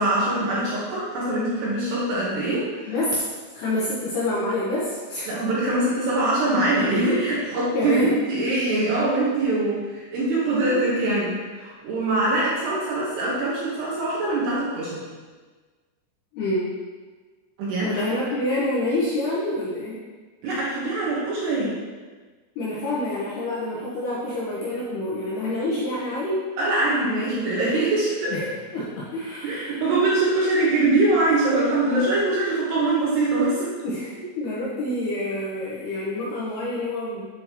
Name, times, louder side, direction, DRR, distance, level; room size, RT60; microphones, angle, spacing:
voice 1, 0.0-2.9 5.3-15.1 17.6-18.0 20.4-21.8 26.6-28.4 29.4-33.7, right 2 dB, 70° right, -6 dB, 2.9 m, -23 dB
voice 2, 2.9-3.2 3.5-5.3 7.7-8.1 16.3-16.7 17.8-20.0 22.6-26.5 28.3-28.4 28.7-29.8 33.8-37.2, left 1 dB, 70° left, -7 dB, 2.5 m, -27 dB
8.5 x 6.2 x 3.0 m, 1.4 s
omnidirectional pair, 5.8 m